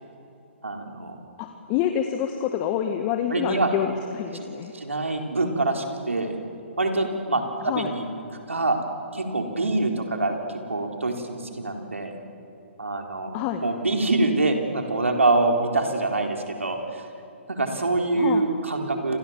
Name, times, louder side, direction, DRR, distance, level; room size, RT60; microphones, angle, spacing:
voice 1, 0.6-1.2 3.3-3.7 4.3-4.5 4.7-6.4 6.8-8.0 8.5-8.8 9.1-12.1 12.8-13.3 13.6-17.0 17.5-19.2, right 2 dB, 80° right, 3 dB, 4.1 m, -25 dB
voice 2, 1.4-4.7 7.7-7.9 13.3-13.6 18.2-18.4, left 9 dB, 30° left, 6 dB, 1.6 m, -27 dB
29.5 x 27.0 x 7.4 m, 2.8 s
figure-of-eight pair, 130°, 7 cm